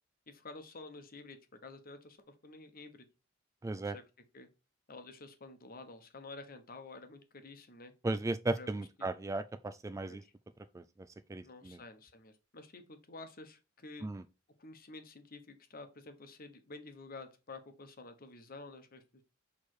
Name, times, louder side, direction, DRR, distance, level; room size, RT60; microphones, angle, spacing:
voice 1, 0.3-3.1 3.7-4.0 4.3-4.5 4.9-7.9 8.5-9.1 10.1-10.3 11.4-14.1 14.6-19.2, left 3 dB, 50° left, 1.1 m, -50 dB
voice 2, 3.6-3.9 8.0-10.2 10.7-10.8 11.3-11.8 14.0-14.2, right 2 dB, 15° right, 0.3 m, -36 dB
6.5 x 3.4 x 4.7 m
head